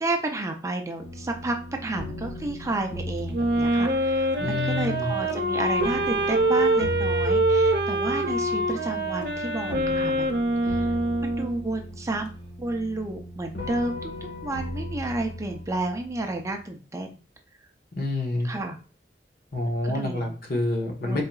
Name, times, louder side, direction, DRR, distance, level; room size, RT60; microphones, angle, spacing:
voice 1, 0.0-10.3 10.6-10.9 11.2-12.3 12.6-17.2 18.4-18.8 19.7-20.3 21.0-21.2, right 2 dB, 20° right, 4 dB, 0.5 m, -31 dB
sound 1, 1.0-16.4, left 1 dB, 80° left, 1.6 m, -37 dB
Wind instrument woodwind instrument, 3.3-11.7, right 1 dB, 65° right, 0.9 m, -24 dB
voice 2, 4.4-5.1 17.9-18.5 19.5-21.2, left 2 dB, 55° left, 2 dB, 1.0 m, -27 dB
4.0 x 3.7 x 2.3 m, 0.35 s
head